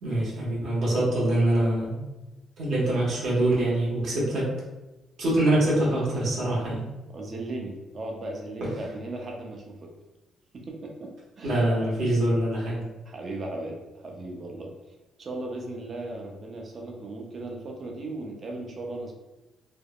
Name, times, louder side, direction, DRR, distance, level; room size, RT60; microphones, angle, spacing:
voice 1, 0.0-2.0 2.6-4.5 5.2-6.8 11.4-12.8, right 1 dB, 70° right, -7 dB, 1.3 m, -24 dB
voice 2, 7.1-9.9 10.5-11.7 13.1-14.7 15.2-19.2, right 2 dB, 45° right, 0 dB, 0.6 m, -37 dB
3.4 x 2.0 x 2.3 m, 1.0 s
cardioid pair, 90°, 0 cm